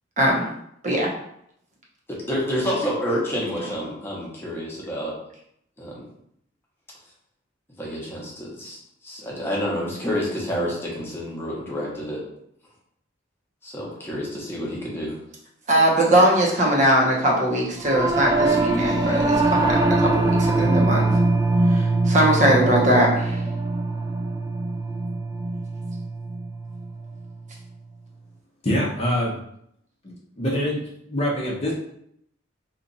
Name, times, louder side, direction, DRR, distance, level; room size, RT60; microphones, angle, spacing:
voice 1, 0.2-0.5 0.8-1.1 15.7-21.1 21.7-23.4, right 1 dB, 40° right, -2 dB, 0.8 m, -20 dB
voice 2, 2.1-5.1 5.8-6.1 7.8-12.2 13.6-15.2, equal, 10° left, -5 dB, 0.9 m, -29 dB
Singing / Musical instrument, 17.8-27.3, right 2 dB, 20° right, 0.3 m, -22 dB
voice 3, 28.6-29.3 30.0-30.8 31.1-31.7, equal, 30° left, -4 dB, 0.7 m, -24 dB
2.9 x 2.4 x 3.9 m, 0.73 s
head